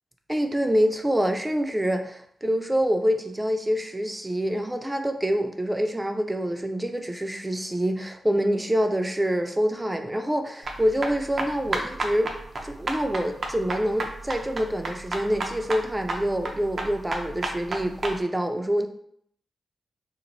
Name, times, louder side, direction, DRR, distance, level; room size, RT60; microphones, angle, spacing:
voice 1, 0.3-2.1 2.4-12.3 12.6-18.9, equal, 15° right, 5 dB, 0.5 m, -26 dB
sound 1, 10.6-18.2, right 2 dB, 60° right, 0.6 m, -32 dB
3.1 x 2.1 x 3.9 m, 0.66 s
supercardioid pair, 45°, 0 cm